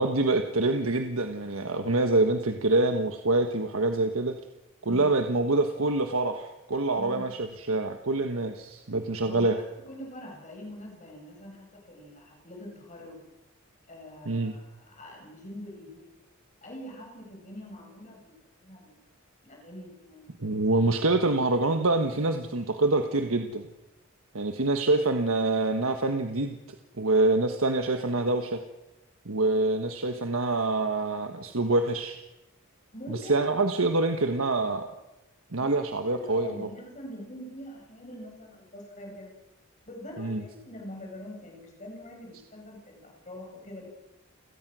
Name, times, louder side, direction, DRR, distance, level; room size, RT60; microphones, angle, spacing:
voice 1, 0.0-4.3 4.8-9.6 14.2-14.6 20.4-23.6 24.3-26.6 27.0-28.6 29.2-32.2 33.1-34.9 35.5-36.7 40.2-40.4, right 2 dB, 80° right, 5 dB, 1.4 m, -26 dB
voice 2, 6.9-7.3 9.3-9.5 9.8-13.2 13.9-16.2 16.6-19.0 19.4-20.3 32.9-33.6 35.6-35.8 36.1-39.3 39.9-43.8, equal, 35° left, 1 dB, 6.6 m, -44 dB
30.0 x 17.0 x 6.3 m, 0.98 s
head